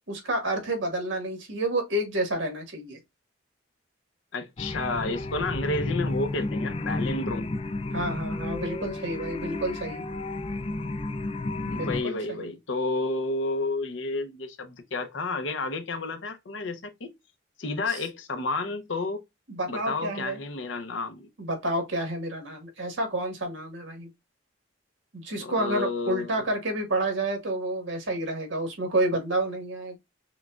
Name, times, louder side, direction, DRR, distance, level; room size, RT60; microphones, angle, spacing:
voice 1, 0.1-3.0 7.9-10.0 11.6-12.5 17.9-18.0 19.5-20.4 21.4-24.1 25.1-30.0, right 1 dB, 80° right, 1.6 m, -29 dB
voice 2, 4.3-7.5 11.7-17.1 17.6-19.2 19.7-21.3 25.4-26.4, left 3 dB, 75° left, 0.7 m, -31 dB
sound 1, 4.6-12.0, left 2 dB, 30° left, 0.3 m, -32 dB
5.8 x 2.3 x 2.3 m
head